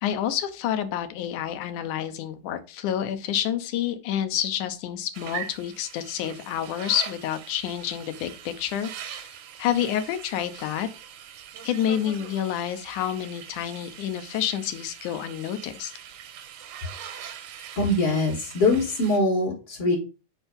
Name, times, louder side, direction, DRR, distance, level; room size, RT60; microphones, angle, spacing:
voice 1, 0.0-9.3 9.6-10.9 11.6-15.9, left 10 dB, 85° left, 9 dB, 2.3 m, -28 dB
sound 1, 5.1-19.2, right 9 dB, 85° right, 2.3 m, -42 dB
voice 2, 17.8-20.0, left 2 dB, 50° left, -3 dB, 2.4 m, -23 dB
5.4 x 4.5 x 5.1 m, 0.32 s
omnidirectional pair, 3.4 m